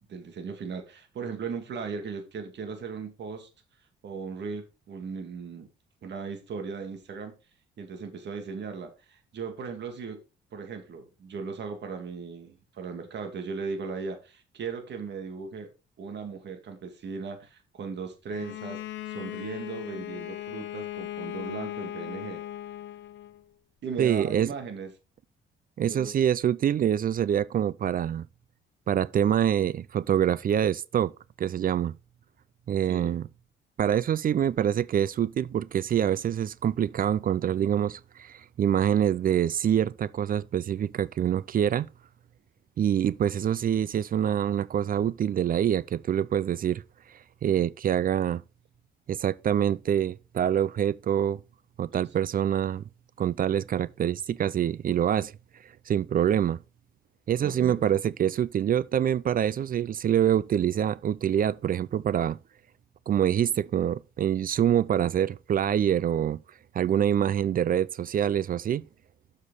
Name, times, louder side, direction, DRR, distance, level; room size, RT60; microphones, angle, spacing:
voice 1, 0.1-3.5 4.0-5.7 6.0-7.3 7.8-10.2 10.5-15.7 16.0-18.8 19.1-22.4 23.8-24.9 25.8-26.1 32.9-33.1 51.9-52.0 57.4-57.8, right 5 dB, 60° right, 2.3 m, -37 dB
Bowed string instrument, 18.3-23.4, left 13 dB, 70° left, 0.9 m, -38 dB
voice 2, 24.0-24.5 25.8-28.3 28.9-31.1 31.4-32.0 32.7-33.3 33.8-41.9 42.8-46.8 47.4-48.4 49.1-51.4 51.8-52.8 53.2-55.3 55.9-56.6 57.3-62.4 63.1-66.4 66.7-68.8, right 9 dB, 45° right, 0.4 m, -25 dB
7.2 x 6.6 x 4.0 m
cardioid pair, 90°, 20 cm